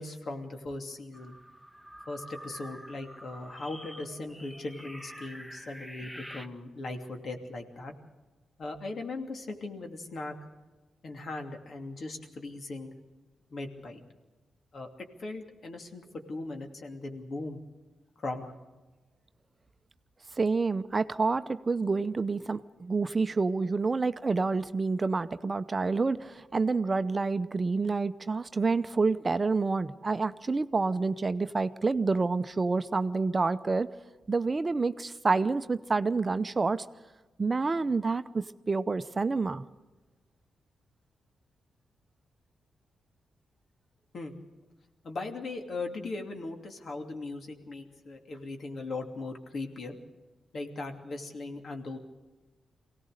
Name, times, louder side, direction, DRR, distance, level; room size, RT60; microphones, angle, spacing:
voice 1, 0.0-1.4 2.1-7.9 8.6-10.3 11.0-13.0 13.5-14.0 14.7-14.9 15.2-17.6 18.2-18.5 44.1-44.3 45.0-50.0 50.5-52.0, left 2 dB, 60° left, 4 dB, 2.7 m, -39 dB
sound 1, 1.1-6.5, equal, 5° left, 1.3 m, -47 dB
voice 2, 20.4-33.9 34.3-36.8 37.4-39.6, right 4 dB, 35° right, 12 dB, 0.7 m, -28 dB
24.0 x 17.5 x 6.6 m, 1.2 s
cardioid pair, 70°, 0 cm